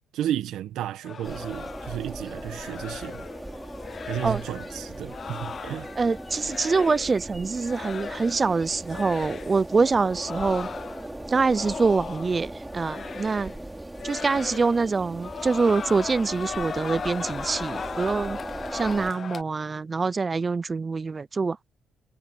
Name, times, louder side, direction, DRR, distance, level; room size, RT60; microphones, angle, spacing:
voice 1, 0.1-3.2 4.1-5.9, right 12 dB, 85° right, 1.5 m, -32 dB
sound 1, 1.0-7.2 7.6-8.5 8.8-9.6 10.1-12.4 12.7-13.6 13.9-14.9 15.2-19.4, left 6 dB, 45° left, 0.7 m, -38 dB
sound 2, 1.2-19.1, right 1 dB, 10° right, 3.6 m, -39 dB
voice 2, 6.0-10.7 11.3-13.5 14.0-18.4 18.7-21.7, right 4 dB, 30° right, 0.4 m, -25 dB
cardioid pair, 90°, 0 cm